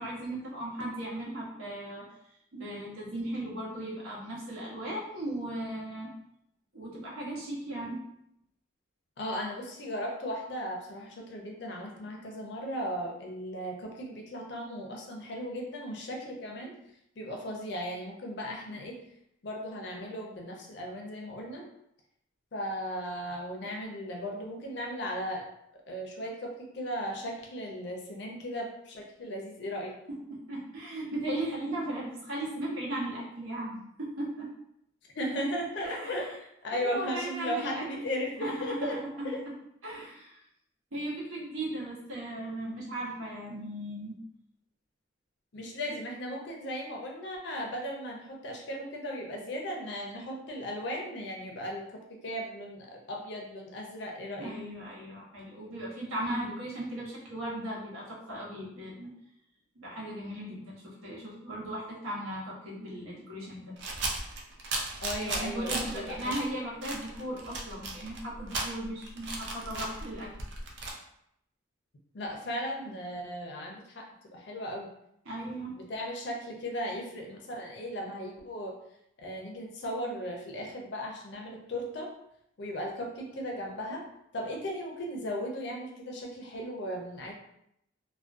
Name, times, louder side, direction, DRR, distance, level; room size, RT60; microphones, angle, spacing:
voice 1, 0.0-2.0 2.5-6.1 6.7-8.0 30.1-30.2 30.5-34.5 35.8-36.3 36.7-37.8 38.4-39.3 39.8-40.4 40.9-44.2 54.4-59.1 59.7-63.7 65.2-70.3 75.2-75.7, right 1 dB, 90° right, -4 dB, 0.9 m, -37 dB
voice 2, 9.2-16.7 17.2-19.0 19.4-21.6 22.5-25.5 25.9-29.9 35.1-39.0 39.2-39.4 45.5-51.8 52.1-54.5 65.0-66.3 72.1-74.9 75.8-78.8 79.2-82.1 82.6-84.1 84.3-87.3, equal, 55° left, 1 dB, 0.5 m, -36 dB
sound 1, 63.8-66.5 66.8-70.9, right 2 dB, 55° right, 0.4 m, -36 dB
2.4 x 2.1 x 2.4 m, 0.76 s
head